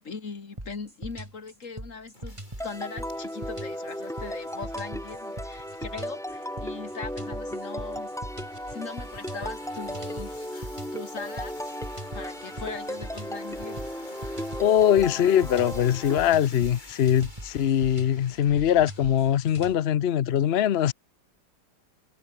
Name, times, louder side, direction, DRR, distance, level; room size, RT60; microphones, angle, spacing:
voice 1, 0.0-8.2 8.7-11.8 12.1-14.0, left 4 dB, 45° left, 2.6 m, -40 dB
sound 1, 0.6-19.8, right 1 dB, 15° right, 5.4 m, -41 dB
sound 2, 1.1-19.7, left 1 dB, 25° left, 7.2 m, -51 dB
sound 3, 2.6-16.3, equal, ahead, 0.8 m, -36 dB
voice 2, 14.6-20.9, left 10 dB, 65° left, 0.6 m, -22 dB
omnidirectional pair, 1.9 m